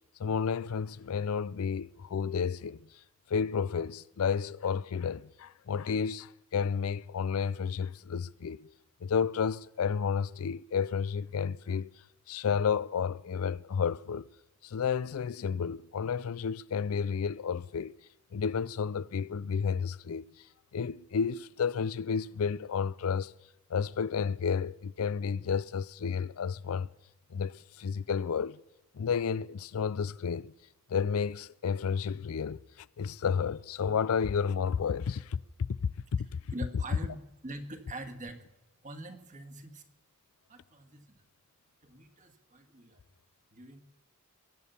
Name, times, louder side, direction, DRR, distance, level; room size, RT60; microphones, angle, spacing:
voice 1, 0.2-2.8 3.3-8.7 9.0-11.9 12.3-14.3 14.6-17.9 18.3-20.3 20.7-23.3 23.7-26.9 27.3-28.6 28.9-30.5 30.9-35.8 36.1-36.4, left 6 dB, 75° left, 0.4 m, -31 dB
voice 2, 36.5-38.5 38.8-39.9 40.5-41.2 41.8-43.0 43.5-43.8, right 1 dB, 35° right, 1.7 m, -44 dB
22.0 x 8.6 x 6.9 m
head